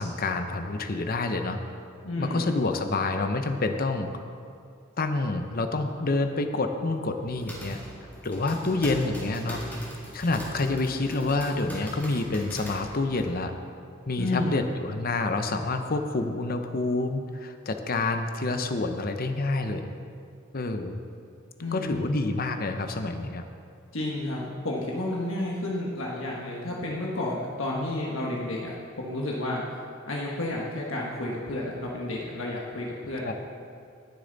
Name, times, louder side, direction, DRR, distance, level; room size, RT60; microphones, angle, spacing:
voice 1, 0.0-1.6 2.2-4.1 5.0-7.8 8.2-9.6 10.1-13.5 14.1-19.9 20.5-21.0 21.7-23.4 33.2-33.3, left 2 dB, 45° left, 7 dB, 0.8 m, -28 dB
voice 2, 2.0-2.5 14.2-14.7 21.6-22.2 23.9-29.6 30.1-33.3, left 1 dB, 85° left, -3 dB, 1.4 m, -31 dB
sound 1, 7.1-13.3, equal, 10° left, 2.2 m, -41 dB
19.0 x 7.0 x 4.0 m, 2.4 s
head